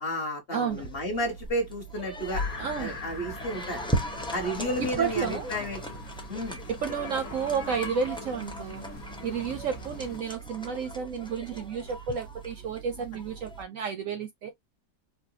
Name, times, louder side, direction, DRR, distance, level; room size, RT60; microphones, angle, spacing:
voice 1, 0.0-2.4 2.8-3.8 4.3-5.9 6.3-6.6, equal, 40° left, 1.2 m, -32 dB
voice 2, 0.5-0.8 2.6-2.9 4.8-5.5 6.7-8.8 9.2-14.5, right 6 dB, 65° right, 0.8 m, -31 dB
sound 1, 0.7-13.6, right 1 dB, 10° left, 0.3 m, -38 dB
sound 2, 2.3-10.2, left 4 dB, 60° left, 1.6 m, -41 dB
4.7 x 2.2 x 2.7 m
omnidirectional pair, 1.8 m